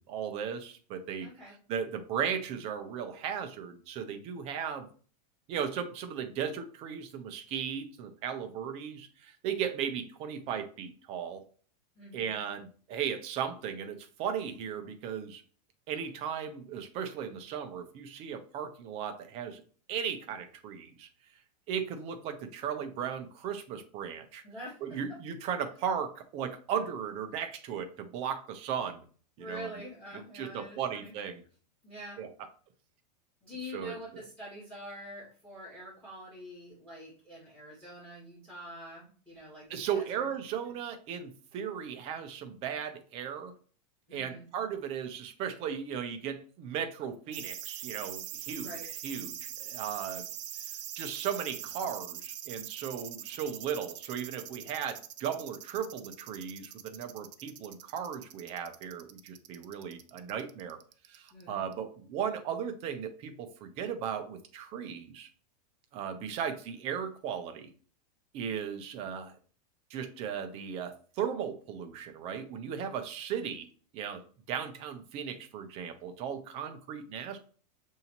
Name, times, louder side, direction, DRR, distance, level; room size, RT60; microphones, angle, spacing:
voice 1, 0.0-1.3 1.7-4.9 5.5-11.4 12.1-15.4 15.9-19.6 19.9-21.1 21.7-24.4 24.8-29.0 29.4-29.7 30.3-31.4 32.2-32.3 33.7-34.2 39.7-43.5 44.1-48.7 49.0-50.2 51.0-60.8 61.1-65.3 65.9-67.7 68.3-69.4 69.9-73.7 73.9-77.4, right 8 dB, 30° right, 7 dB, 0.6 m, -36 dB
voice 2, 1.2-1.6 12.0-12.3 24.4-25.0 29.4-31.1 31.8-32.2 33.4-40.2 44.1-44.5 48.6-48.8 61.3-61.6, equal, 5° left, -7 dB, 2.2 m, -46 dB
sound 1, 47.3-61.4 61.7-61.8, right 11 dB, 75° right, 0.5 m, -42 dB
6.7 x 2.7 x 2.9 m, 0.42 s
supercardioid pair, 160°, 21 cm